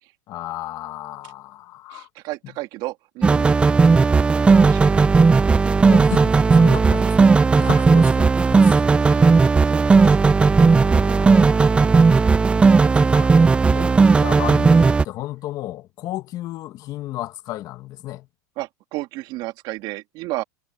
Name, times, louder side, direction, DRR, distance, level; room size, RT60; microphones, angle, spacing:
voice 1, 0.3-2.1 5.9-9.0 10.6-13.3 13.7-18.3, left 15 dB, 40° left, 1.9 m, -34 dB
voice 2, 1.9-3.6 4.4-5.0 7.0-7.2 7.6-7.9 9.1-10.2 13.7-13.8 18.6-20.4, right 19 dB, 50° right, 2.3 m, -34 dB
sound 1, 3.2-15.0, right 4 dB, 10° right, 0.4 m, -15 dB
supercardioid pair, 125°, 10 cm